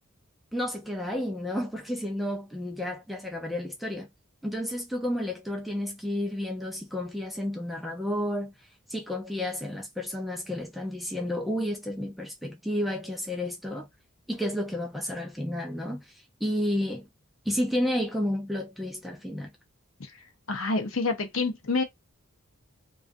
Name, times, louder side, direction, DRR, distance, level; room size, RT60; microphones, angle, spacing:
voice 1, 0.5-4.1 4.4-8.5 8.9-13.9 14.3-17.1 17.5-19.5, left 1 dB, ahead, 0.3 m, -31 dB
voice 2, 20.5-21.8, left 3 dB, 70° left, 0.7 m, -27 dB
2.4 x 2.3 x 2.5 m
head